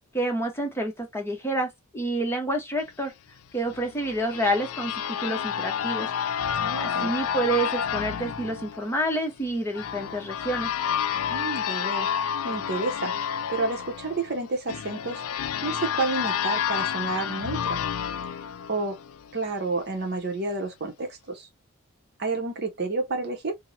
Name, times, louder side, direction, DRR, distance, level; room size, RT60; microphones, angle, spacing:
voice 1, 0.1-1.7 1.9-3.1 3.5-6.1 6.8-10.7, right 1 dB, 10° left, 0.8 m, -28 dB
sound 1, 3.7-19.4, left 8 dB, 80° left, 0.3 m, -30 dB
voice 2, 6.6-7.2 11.3-12.1 12.4-13.1 13.5-15.2 15.6-17.8 18.7-19.0 19.3-21.5 22.2-23.5, right 3 dB, 50° right, 0.7 m, -30 dB
4.4 x 2.1 x 2.6 m
head